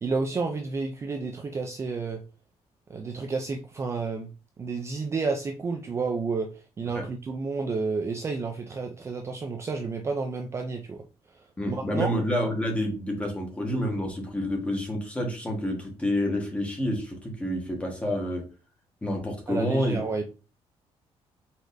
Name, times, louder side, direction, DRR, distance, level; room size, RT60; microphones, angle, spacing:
voice 1, 0.0-2.2 2.9-4.3 4.6-6.5 6.8-11.0 11.3-12.1 19.5-20.2, right 4 dB, 25° right, 3 dB, 0.4 m, -30 dB
voice 2, 11.6-18.4 19.0-20.0, equal, 10° left, 0 dB, 1.3 m, -28 dB
4.7 x 4.1 x 2.6 m, 0.33 s
cardioid pair, 160°, 11 cm